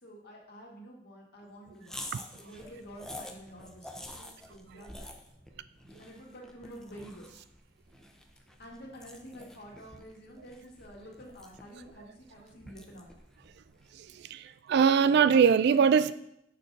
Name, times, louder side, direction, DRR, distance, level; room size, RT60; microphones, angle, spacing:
voice 1, 0.0-2.1 2.4-5.1 6.0-7.3 8.6-13.1, equal, 60° left, 1.6 m, -49 dB
sound 1, 1.8-14.3, left 1 dB, 5° left, 0.5 m, -49 dB
voice 2, 14.0-16.1, right 6 dB, 60° right, 0.3 m, -22 dB
6.6 x 4.0 x 5.2 m
head